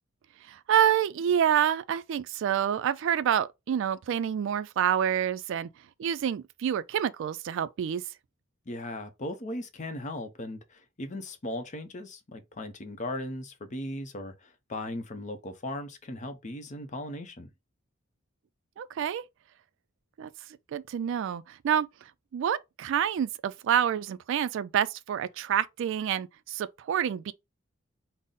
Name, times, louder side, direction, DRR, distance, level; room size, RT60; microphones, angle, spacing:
voice 1, 0.5-5.7 6.0-8.0 18.8-19.2 20.2-20.3 20.7-21.9 22.3-27.3, right 9 dB, 65° right, 0.3 m, -27 dB
voice 2, 8.7-17.5, left 1 dB, 35° left, 0.6 m, -38 dB
3.9 x 2.0 x 3.6 m
head